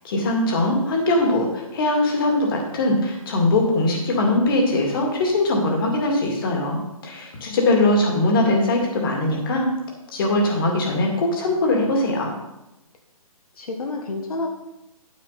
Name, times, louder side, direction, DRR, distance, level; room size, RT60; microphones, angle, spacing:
voice 1, 0.0-9.7 10.1-12.3, left 2 dB, 35° left, 1 dB, 2.3 m, -21 dB
voice 2, 7.7-8.2 13.5-14.5, left 3 dB, 75° left, 2 dB, 1.5 m, -29 dB
9.4 x 8.8 x 4.2 m, 0.92 s
hypercardioid pair, 160°, 19 cm